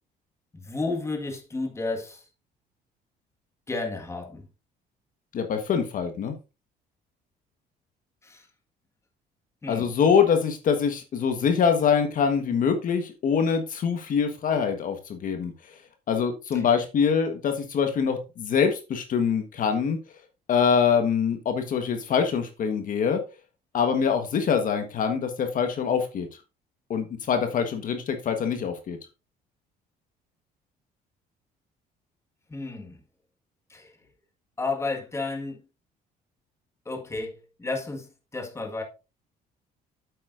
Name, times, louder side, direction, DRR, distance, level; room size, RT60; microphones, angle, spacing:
voice 1, 0.5-2.2 3.7-4.4 8.2-8.5 9.6-9.9 32.5-33.0 33.7-33.9 34.6-35.6 36.8-37.3 37.6-38.1 38.3-38.8, left 3 dB, 15° left, 1.7 m, -32 dB
voice 2, 5.3-6.3 9.7-15.8 16.1-20.0 20.5-23.2 23.7-26.3 26.9-29.0, left 6 dB, 55° left, 1.4 m, -24 dB
8.6 x 8.0 x 2.6 m
cardioid pair, 110°, 17 cm